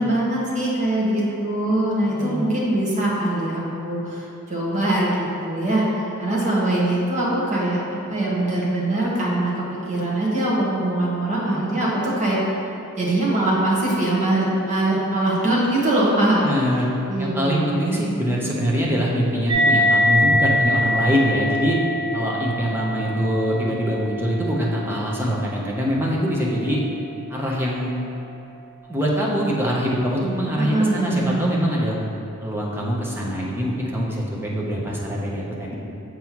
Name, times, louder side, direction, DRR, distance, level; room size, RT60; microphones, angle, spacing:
voice 1, 0.0-12.4 13.0-16.4 17.1-17.8 30.6-31.4, right 1 dB, 35° right, -6 dB, 1.3 m, -22 dB
voice 2, 16.4-16.9 17.2-21.8 22.1-26.8 27.3-27.9 28.9-32.0 32.4-35.8, equal, 10° right, -4 dB, 0.8 m, -23 dB
sound 1, 19.5-26.4, left 1 dB, 80° right, 0.9 m, -23 dB
7.5 x 5.5 x 3.0 m, 2.8 s
head